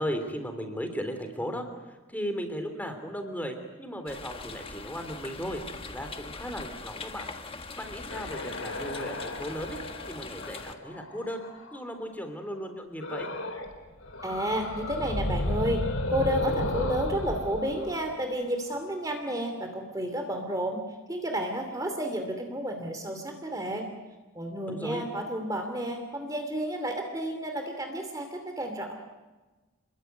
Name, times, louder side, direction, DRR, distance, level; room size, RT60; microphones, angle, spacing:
voice 1, 0.0-7.3 7.8-9.8 10.1-11.4 11.7-13.3 24.7-25.0, equal, 10° left, 6 dB, 3.3 m, -36 dB
sound 1, 4.1-10.8, left 3 dB, 25° left, 1.6 m, -42 dB
sound 2, 8.1-11.9 13.0-13.7 14.0-18.9, left 1 dB, 70° left, 4.2 m, -34 dB
voice 2, 14.2-15.8 16.1-20.8 21.1-23.9 24.3-28.9, equal, 15° right, 4 dB, 2.7 m, -31 dB
29.0 x 21.5 x 9.4 m, 1.2 s
head